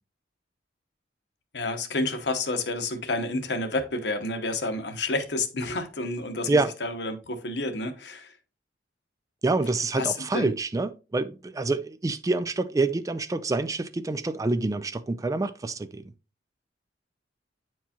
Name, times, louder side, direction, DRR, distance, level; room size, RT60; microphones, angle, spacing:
voice 1, 1.5-8.3 9.9-10.5, left 2 dB, 70° left, 1.0 m, -30 dB
voice 2, 9.4-16.0, right 3 dB, 20° right, 0.3 m, -27 dB
9.1 x 4.6 x 2.8 m
head